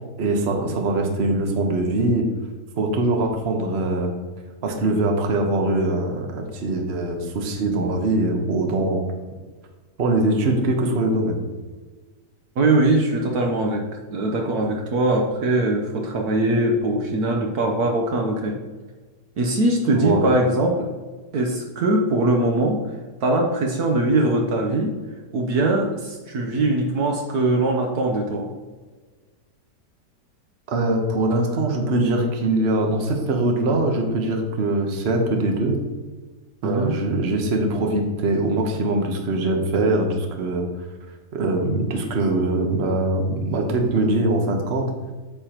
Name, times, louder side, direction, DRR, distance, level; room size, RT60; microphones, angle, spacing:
voice 1, 0.2-2.3 2.8-4.1 4.6-9.0 10.0-11.4 19.9-20.3 30.7-35.8 36.6-40.7 41.3-44.9, right 2 dB, 40° right, 3 dB, 1.2 m, -22 dB
voice 2, 12.6-13.9 14.1-18.6 19.4-20.9 21.3-22.8 23.2-24.9 25.3-28.5 36.6-37.0, right 2 dB, 65° right, 2 dB, 1.3 m, -21 dB
8.8 x 7.2 x 3.0 m, 1.3 s
omnidirectional pair, 1.8 m